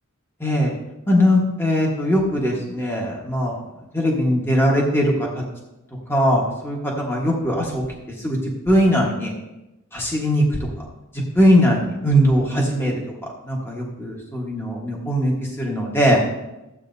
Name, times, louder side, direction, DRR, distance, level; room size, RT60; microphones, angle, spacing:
voice 1, 0.4-0.7 1.1-3.6 3.9-5.3 6.1-7.8 8.2-8.4 8.6-9.3 9.9-10.4 11.1-12.9 13.4-16.2, equal, 10° left, -2 dB, 1.4 m, -20 dB
14.5 x 8.2 x 2.7 m, 0.95 s
head